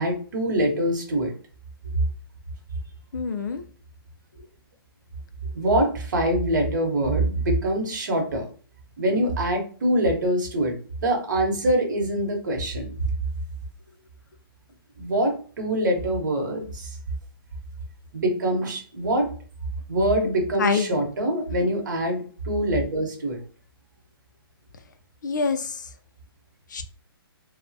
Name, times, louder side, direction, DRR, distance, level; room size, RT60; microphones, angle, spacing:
voice 1, 0.0-1.3 5.5-8.4 9.0-10.7 11.0-12.9 15.0-16.9 18.1-19.3 19.9-23.4, right 1 dB, 50° right, 2 dB, 1.0 m, -24 dB
voice 2, 3.1-3.6 20.6-21.0 25.2-25.7 26.7-26.8, left 5 dB, 50° left, 10 dB, 0.4 m, -25 dB
3.2 x 2.1 x 2.7 m, 0.41 s
hypercardioid pair, 175°, 13 cm